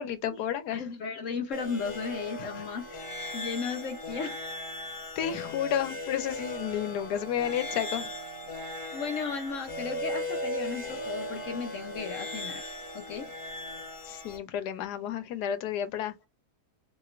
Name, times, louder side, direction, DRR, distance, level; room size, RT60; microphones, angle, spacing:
voice 1, 0.0-0.8 2.4-2.5 5.2-8.1 14.1-16.1, left 10 dB, 80° left, 1.2 m, -31 dB
voice 2, 0.7-2.9 3.3-4.4 7.4-7.5 8.9-12.6 12.9-13.3, left 5 dB, 65° left, 0.9 m, -35 dB
sound 1, 1.5-14.4, left 1 dB, 25° left, 0.7 m, -37 dB
3.1 x 2.9 x 2.3 m
omnidirectional pair, 1.7 m